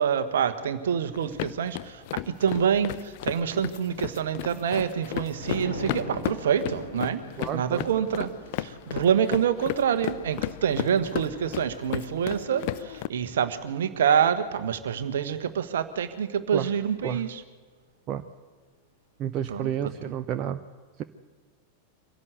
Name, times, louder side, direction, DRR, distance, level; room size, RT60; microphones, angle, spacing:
voice 1, 0.0-7.2 7.5-17.4 19.5-19.7, right 8 dB, 60° right, 11 dB, 1.4 m, -26 dB
sound 1, 1.2-13.1, left 17 dB, 50° left, 0.6 m, -35 dB
Thunder, 4.6-15.8 16.2-16.5, left 1 dB, 75° left, 6.3 m, -43 dB
voice 2, 7.4-7.9 16.5-16.7 17.0-17.2 18.1-18.2 19.2-20.6 21.0-21.1, right 10 dB, 35° right, 10 dB, 0.7 m, -30 dB
24.5 x 16.5 x 8.0 m, 1.5 s
figure-of-eight pair, 90°, 0 cm